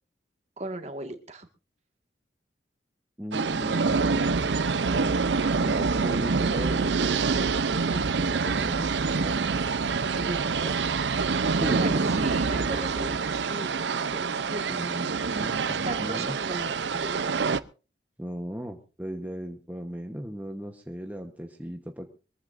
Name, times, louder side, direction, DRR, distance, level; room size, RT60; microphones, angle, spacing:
voice 1, 0.6-1.5 10.1-10.8 11.7-14.8 15.4-17.5, right 2 dB, 40° right, 6 dB, 1.8 m, -37 dB
voice 2, 3.2-4.5 4.9-9.6 11.5-12.3 14.6-16.4 18.2-22.1, equal, 10° right, 3 dB, 1.1 m, -37 dB
sound 1, 3.3-17.6, right 4 dB, 85° right, 0.6 m, -26 dB
23.5 x 14.5 x 2.6 m, 0.34 s
head